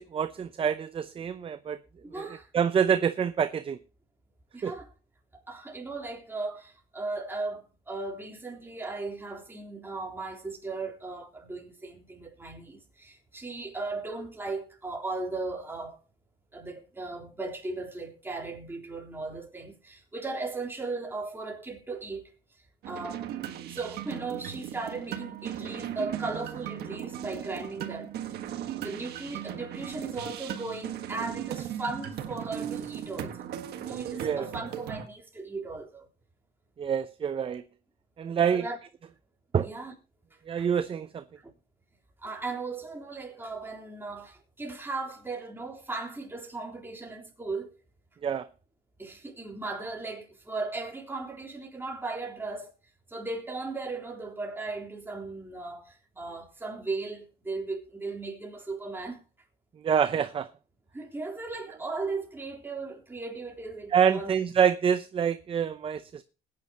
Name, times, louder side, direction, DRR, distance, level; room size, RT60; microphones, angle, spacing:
voice 1, 0.0-1.8 2.2-2.3 2.5-3.8 4.6-4.7 34.2-34.5 36.8-37.6 38.2-38.7 39.5-39.7 40.5-41.2 48.2-48.5 59.8-60.5 63.9-66.2, right 7 dB, 30° right, 0.7 m, -26 dB
voice 2, 2.0-2.5 4.5-4.9 5.5-16.0 16.5-22.3 22.9-23.3 23.7-28.1 28.8-33.5 33.8-36.1 38.5-38.8 39.6-39.9 40.6-40.7 42.2-47.7 49.0-52.7 53.1-59.2 60.9-64.3, right 3 dB, 15° right, 3.6 m, -37 dB
sound 1, 22.8-35.1, right 10 dB, 70° right, 1.5 m, -37 dB
20.5 x 9.4 x 2.9 m
cardioid pair, 110°, 17 cm